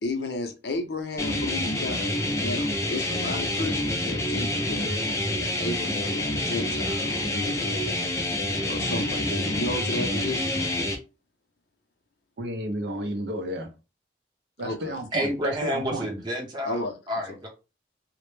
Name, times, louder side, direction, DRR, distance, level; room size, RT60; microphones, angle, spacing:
voice 1, 0.0-2.1 2.4-4.9 5.6-7.8 8.7-10.6 14.6-15.0 16.6-17.0 17.3-17.4, left 2 dB, 70° left, 0.5 m, -33 dB
sound 1, 1.2-11.0, left 1 dB, 15° left, 0.4 m, -27 dB
voice 2, 12.4-13.7 14.6-16.1, right 1 dB, 70° right, 0.5 m, -32 dB
voice 3, 15.1-16.8 17.1-17.5, equal, 25° right, 0.7 m, -29 dB
2.1 x 2.0 x 3.0 m
head